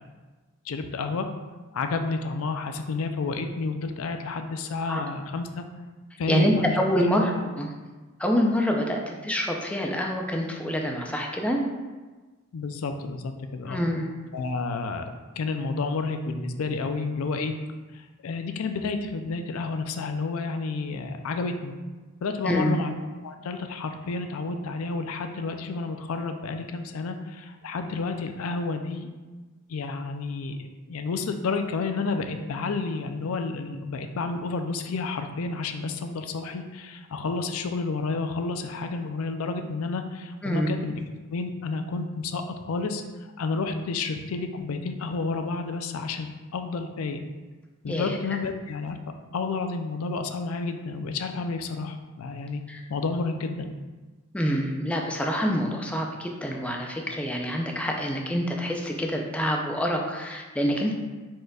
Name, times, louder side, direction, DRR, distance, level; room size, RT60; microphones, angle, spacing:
voice 1, 0.7-1.3 1.7-5.6 6.2-6.8 7.0-7.3 12.5-13.8 14.3-17.5 17.9-21.7 22.2-22.9 23.2-29.1 29.7-41.0 41.3-43.0 43.4-47.2 47.8-49.0 49.3-52.6 52.9-53.7, left 4 dB, 75° left, 6 dB, 0.4 m, -30 dB
voice 2, 6.3-7.3 7.6-7.7 8.2-11.6 13.6-14.1 22.4-22.7 40.4-40.7 47.9-48.2 52.7-52.8 54.3-60.9, equal, 5° left, 1 dB, 0.4 m, -26 dB
4.9 x 4.3 x 2.3 m, 1.3 s
head